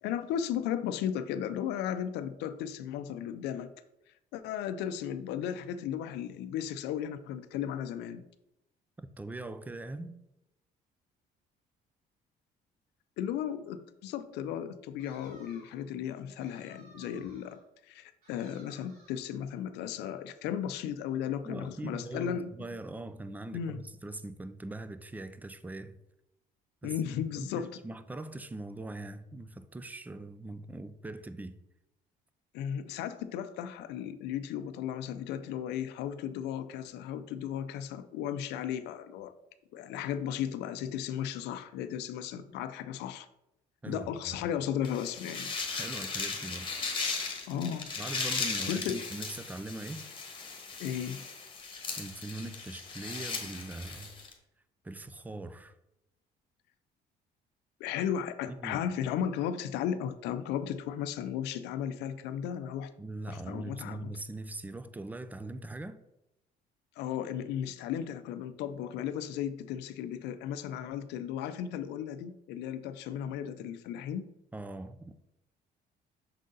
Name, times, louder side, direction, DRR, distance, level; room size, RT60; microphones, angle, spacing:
voice 1, 0.0-3.7 4.3-8.2 13.2-17.6 17.9-22.5 23.5-23.8 26.8-27.7 32.5-39.3 39.7-43.3 43.9-45.5 47.5-47.9 48.6-49.0 50.8-51.3 57.8-62.9 63.3-64.1 67.0-74.3, left 9 dB, 85° left, 0.5 m, -35 dB
voice 2, 9.0-10.2 21.4-26.0 26.8-31.6 43.8-44.5 45.7-46.7 48.0-50.0 52.0-54.1 54.8-55.7 58.5-58.8 63.0-66.0 74.5-75.1, right 2 dB, 10° right, 0.4 m, -41 dB
sound 1, 15.0-15.9 16.4-17.6 18.2-19.3, right 2 dB, 60° right, 2.2 m, -58 dB
sound 2, 44.8-54.3, left 4 dB, 30° left, 1.3 m, -37 dB
6.4 x 3.9 x 3.8 m
cardioid pair, 110°, 17 cm